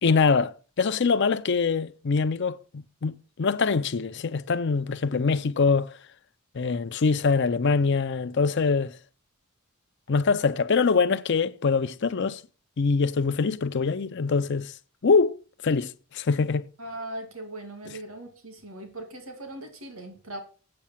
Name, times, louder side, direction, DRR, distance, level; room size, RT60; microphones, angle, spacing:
voice 1, 0.0-6.0 6.5-9.0 10.1-12.4 12.8-14.7 15.0-16.7, left 4 dB, 55° left, 0.5 m, -24 dB
voice 2, 16.8-20.4, right 1 dB, 80° right, 2.4 m, -39 dB
8.7 x 6.5 x 7.3 m
head